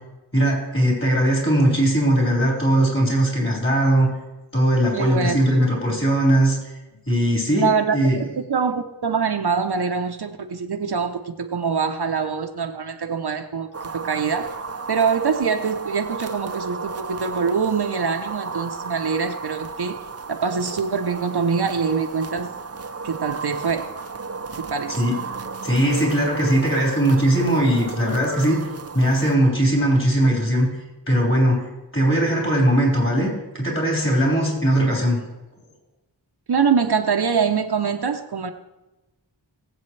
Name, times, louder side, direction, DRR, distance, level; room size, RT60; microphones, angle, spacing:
voice 1, 0.3-4.1 4.5-6.7 7.1-8.2 24.9-25.1 25.6-28.6 28.9-30.7 31.1-33.3 33.5-35.2, right 1 dB, 30° left, 4.9 m, -19 dB
voice 2, 4.9-5.4 7.5-14.6 14.9-20.0 20.3-22.5 23.0-23.9 24.6-25.0 36.5-38.5, right 5 dB, 65° right, 0.8 m, -24 dB
sound 1, 13.7-29.4, right 4 dB, 35° right, 0.6 m, -34 dB
21.0 x 7.9 x 3.3 m
wide cardioid pair, 75°, 43 cm